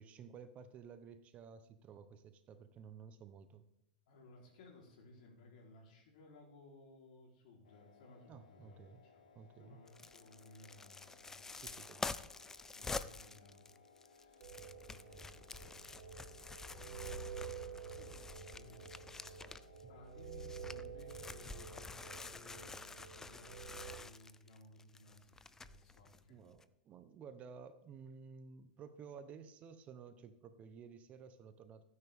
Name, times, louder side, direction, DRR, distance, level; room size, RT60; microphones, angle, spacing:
voice 1, 0.0-3.6 8.3-9.0 9.3-9.8 11.5-12.2 19.8-19.9 26.3-31.8, right 6 dB, 30° right, 11 dB, 0.9 m, -54 dB
voice 2, 4.1-9.2 9.5-12.0 12.7-13.7 14.0-14.6 14.9-15.8 16.5-19.5 19.9-26.4, left 2 dB, 65° left, 0 dB, 3.8 m, -60 dB
sound 1, 7.6-22.0, left 4 dB, 85° left, 1.8 m, -65 dB
sound 2, 9.9-19.8 20.2-26.2 26.6-26.7, left 3 dB, 10° left, 0.4 m, -48 dB
sound 3, 14.4-24.0, right 6 dB, 70° right, 3.3 m, -50 dB
14.5 x 9.6 x 3.6 m, 0.82 s
hypercardioid pair, 130°, 5 cm